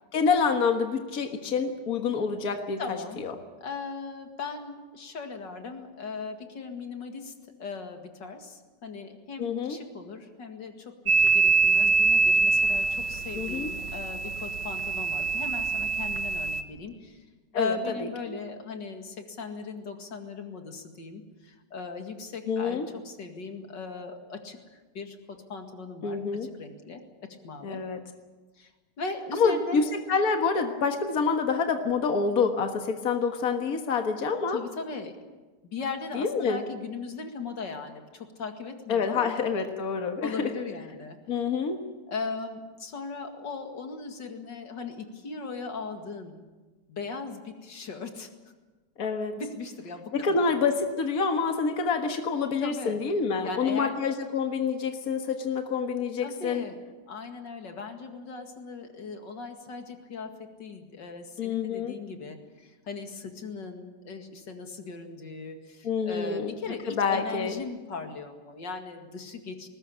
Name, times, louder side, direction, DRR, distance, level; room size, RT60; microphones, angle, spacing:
voice 1, 0.1-3.3 9.4-9.8 13.3-13.7 17.5-17.8 18.3-18.4 22.5-22.9 26.0-26.5 27.6-28.0 29.3-34.6 36.1-36.6 38.9-40.5 41.3-41.8 49.0-49.4 50.1-56.7 61.4-61.9 65.8-66.5 66.9-67.6, left 5 dB, 55° left, 5 dB, 2.0 m, -27 dB
voice 2, 2.8-3.2 3.6-7.3 7.6-17.2 17.5-27.8 28.6-28.7 29.0-29.9 34.5-35.2 35.6-39.4 40.2-41.2 42.1-46.4 46.9-48.3 49.4-50.5 52.6-53.0 53.4-54.0 56.2-56.8 57.1-69.7, left 4 dB, 85° left, 5 dB, 2.8 m, -38 dB
sound 1, 11.1-16.6, right 4 dB, 80° right, 1.8 m, -24 dB
20.5 x 19.5 x 8.7 m, 1.2 s
omnidirectional pair, 1.9 m